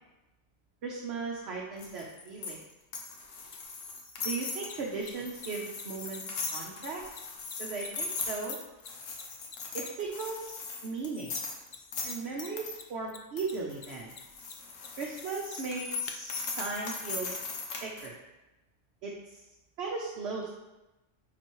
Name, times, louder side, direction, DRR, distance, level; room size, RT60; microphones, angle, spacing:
voice 1, 0.8-2.6 4.2-6.2 6.5-7.0 7.6-8.6 9.7-11.3 12.0-14.1 15.0-17.3 17.8-18.1 19.0-19.4 19.8-20.6, right 4 dB, 60° right, -2 dB, 1.0 m, -37 dB
sound 1, 1.8-12.8 13.4-18.1, left 4 dB, 85° left, 1.3 m, -39 dB
Mechanisms, 3.5-3.6 4.6-10.5 11.3-12.1 12.4-16.1 16.9-17.0, left 7 dB, 55° left, 0.6 m, -47 dB
8.9 x 4.2 x 3.1 m, 1.0 s
omnidirectional pair, 1.3 m